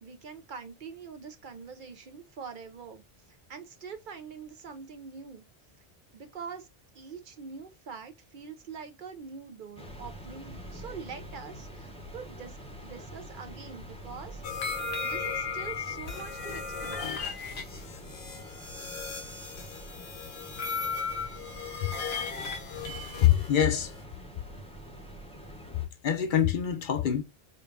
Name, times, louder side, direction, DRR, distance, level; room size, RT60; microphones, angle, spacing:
voice 1, 0.0-3.0 3.3-5.4 6.1-6.7 6.9-14.4 14.8-17.2, right 5 dB, 55° right, 0.7 m, -44 dB
sound 1, 9.8-25.9, equal, 5° left, 0.7 m, -45 dB
sound 2, 14.4-24.0, left 5 dB, 80° left, 1.1 m, -36 dB
voice 2, 22.9-23.9 26.0-27.2, left 10 dB, 60° left, 0.7 m, -25 dB
5.1 x 2.4 x 2.4 m
omnidirectional pair, 1.0 m